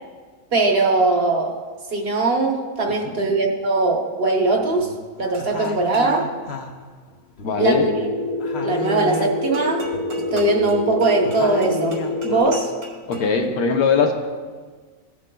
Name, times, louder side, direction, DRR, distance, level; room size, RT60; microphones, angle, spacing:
voice 1, 0.5-1.6 1.9-4.9 5.2-6.3 7.6-7.9 8.6-9.9 10.1-12.7, right 3 dB, 45° right, 2 dB, 1.1 m, -20 dB
sound 1, 4.5-5.1 5.4-8.1 8.4-9.6 9.8-12.4, left 3 dB, 55° left, 0.9 m, -35 dB
sound 2, 5.3-6.2 9.5-13.5, right 2 dB, 90° right, 2.1 m, -41 dB
voice 2, 7.4-7.9 13.1-14.1, left 5 dB, 85° left, 4 dB, 1.4 m, -20 dB
sound 3, 7.7-12.6, left 1 dB, 70° right, 1.6 m, -26 dB
16.5 x 7.3 x 2.3 m, 1.5 s
omnidirectional pair, 1.5 m